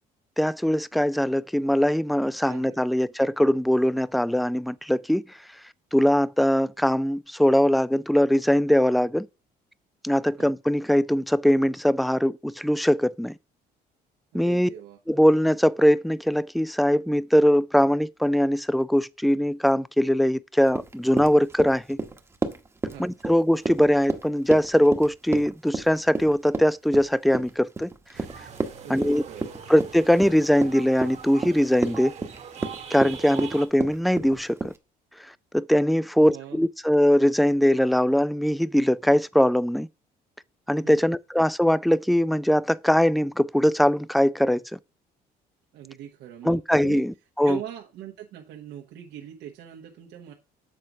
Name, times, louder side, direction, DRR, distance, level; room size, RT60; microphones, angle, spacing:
voice 1, 0.4-5.2 5.9-9.3 10.0-13.3 14.3-14.7 15.1-22.0 23.0-27.9 28.9-29.2 29.7-32.1 32.9-34.7 35.5-39.9 40.7-44.8 46.4-47.6, equal, ahead, 0.3 m, -21 dB
voice 2, 2.4-2.9 10.4-10.5 14.3-15.0 22.9-23.1 28.8-29.5 36.2-36.6 40.8-41.1 45.7-47.0 47.4-50.3, right 11 dB, 80° right, 1.3 m, -41 dB
Run, 20.7-34.8, right 3 dB, 15° right, 1.0 m, -32 dB
sound 1, 28.1-33.7, right 6 dB, 40° right, 1.3 m, -42 dB
7.7 x 4.0 x 6.0 m
cardioid pair, 110°, 17 cm